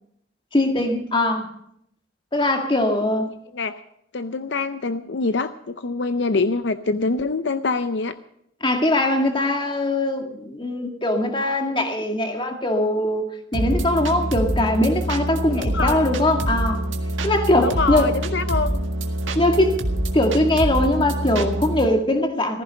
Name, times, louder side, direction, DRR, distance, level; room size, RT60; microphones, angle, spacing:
voice 1, 0.5-1.5 2.3-3.3 8.6-13.2 13.5-16.8 17.2-18.1 19.4-19.8 20.1-22.6, left 1 dB, 25° left, 4 dB, 2.1 m, -21 dB
voice 2, 4.1-8.1 15.6-16.1 17.6-18.9, left 3 dB, 65° left, 11 dB, 0.6 m, -25 dB
sound 1, 13.5-21.9, right 1 dB, 85° right, 1.8 m, -25 dB
15.5 x 15.0 x 5.2 m, 0.73 s
head